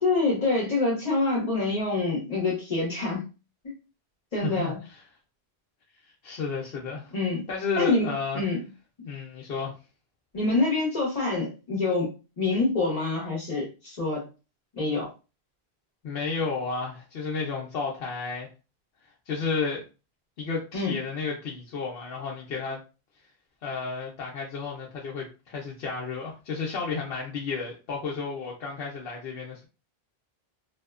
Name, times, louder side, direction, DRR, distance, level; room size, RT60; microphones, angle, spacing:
voice 1, 0.0-3.3 3.6-3.7 4.3-4.8 7.1-7.4 7.8-8.6 10.3-12.1 12.4-14.3 14.7-15.1 20.7-21.0, left 3 dB, 40° left, 0.9 m, -26 dB
voice 2, 4.4-4.7 6.2-7.1 7.5-8.4 9.0-9.7 16.0-18.5 19.3-19.8 20.4-22.8 23.6-29.7, left 5 dB, 70° left, 0.8 m, -32 dB
2.6 x 2.1 x 2.3 m
omnidirectional pair, 1.1 m